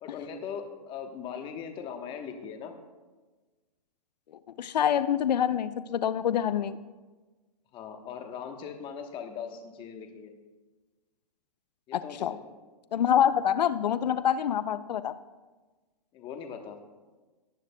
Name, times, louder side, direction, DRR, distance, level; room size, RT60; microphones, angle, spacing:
voice 1, 0.0-2.7 6.5-6.7 7.7-10.3 11.9-12.5 16.1-16.8, left 7 dB, 25° left, 5 dB, 1.0 m, -40 dB
voice 2, 4.6-6.8 11.9-12.3 12.9-15.1, left 9 dB, 85° left, 14 dB, 0.5 m, -26 dB
18.0 x 8.9 x 2.2 m, 1.3 s
hypercardioid pair, 145°, 21 cm